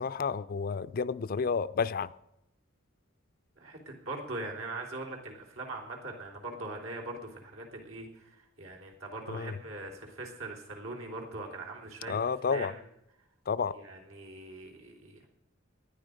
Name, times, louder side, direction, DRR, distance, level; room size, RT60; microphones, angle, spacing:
voice 1, 0.0-2.1 9.3-9.6 12.1-12.7 13.5-13.8, left 5 dB, 45° left, 15 dB, 0.4 m, -31 dB
voice 2, 3.6-12.8 13.7-15.3, right 2 dB, 75° right, 0 dB, 3.4 m, -41 dB
19.0 x 11.0 x 5.1 m, 0.85 s
head